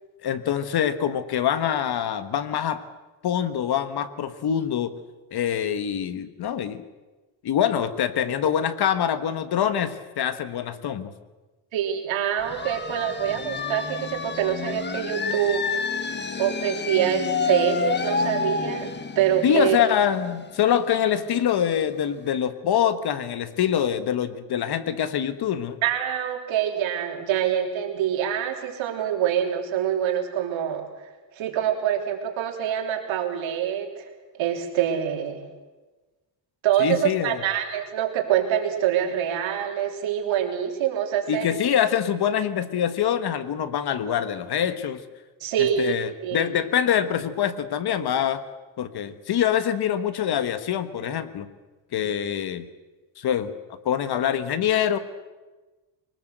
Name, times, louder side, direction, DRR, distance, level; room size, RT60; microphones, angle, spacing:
voice 1, 0.2-2.8 3.2-4.9 5.3-6.8 7.4-11.1 19.4-25.8 36.8-37.4 41.3-45.0 45.6-48.4 48.8-51.5 51.9-52.7 53.2-55.0, left 9 dB, 55° left, 12 dB, 1.5 m, -25 dB
voice 2, 11.7-15.6 16.4-19.8 25.8-30.9 31.4-34.1 34.4-35.4 36.6-41.6 45.4-45.9 46.2-46.5, right 10 dB, 85° right, 3 dB, 3.6 m, -25 dB
sound 1, 12.4-21.9, left 5 dB, 25° left, 1.1 m, -30 dB
23.0 x 19.5 x 8.0 m, 1.2 s
cardioid pair, 145°, 45 cm